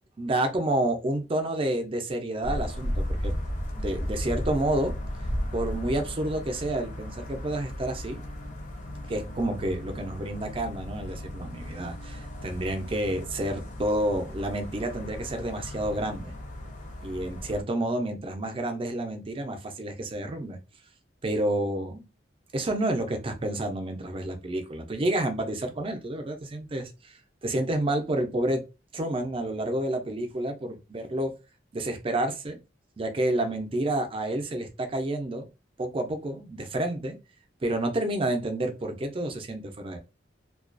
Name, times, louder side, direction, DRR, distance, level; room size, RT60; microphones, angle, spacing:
voice 1, 0.2-3.3 3.7-4.9 5.5-8.2 9.1-16.3 17.0-20.6 21.2-22.0 22.5-28.6 28.9-31.3 31.7-32.6 33.0-35.5 35.8-37.2 37.6-40.0, right 1 dB, 30° right, 5 dB, 0.5 m, -29 dB
sound 1, 2.4-17.6, equal, 45° left, 0.5 m, -35 dB
2.3 x 2.2 x 2.5 m, 0.28 s
head